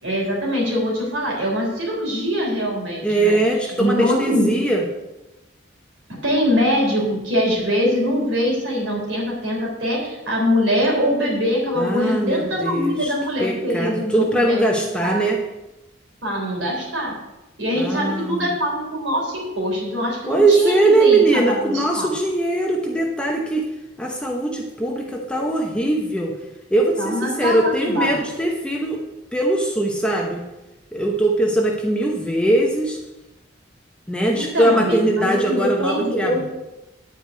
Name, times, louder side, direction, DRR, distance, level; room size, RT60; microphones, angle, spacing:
voice 1, 0.0-3.4 3.6-4.5 6.2-14.6 15.0-15.3 16.2-17.1 17.6-22.1 27.0-28.2 34.3-36.5, equal, 75° right, -2 dB, 3.7 m, -23 dB
voice 2, 3.0-4.8 11.8-13.1 13.4-15.4 17.7-18.5 20.3-23.7 24.0-26.3 26.7-29.0 29.3-30.4 30.9-33.0 34.1-36.5, right 2 dB, 5° left, 0 dB, 0.9 m, -20 dB
10.0 x 4.9 x 8.2 m, 1.0 s
head